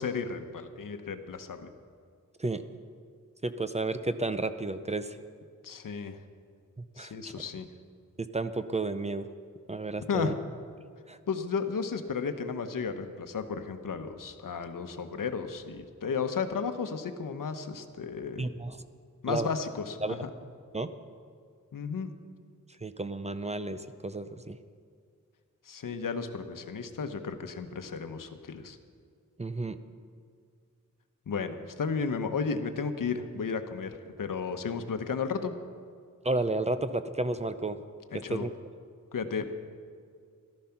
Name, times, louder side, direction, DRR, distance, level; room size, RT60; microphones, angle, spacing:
voice 1, 0.0-1.7 5.6-6.2 7.0-7.7 10.1-10.3 11.3-18.5 19.2-20.3 21.7-22.1 25.6-28.8 31.3-35.5 38.1-38.5 39.1-39.5, left 5 dB, 80° left, 8 dB, 1.0 m, -33 dB
voice 2, 3.4-5.2 7.0-7.1 8.3-9.3 9.7-10.3 11.1-11.2 18.4-18.8 19.3-19.5 20.0-20.1 20.7-20.9 22.8-24.6 29.4-29.8 36.2-37.8 38.3-38.5, right 2 dB, 20° right, 11 dB, 0.5 m, -32 dB
14.0 x 12.5 x 5.9 m, 2.2 s
wide cardioid pair, 115°, 32 cm